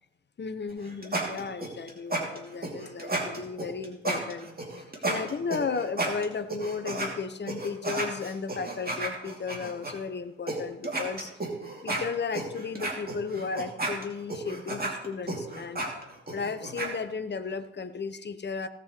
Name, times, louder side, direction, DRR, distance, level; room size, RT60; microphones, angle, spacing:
voice 1, 0.4-4.5 5.0-11.3 11.8-15.9 16.3-18.7, left 5 dB, 30° left, 11 dB, 0.9 m, -34 dB
sound 1, 0.7-7.1 7.5-9.9 10.5-10.6 10.8-16.9, right 2 dB, 25° right, 2.8 m, -32 dB
18.0 x 7.7 x 3.2 m, 0.89 s
figure-of-eight pair, 45°, 36 cm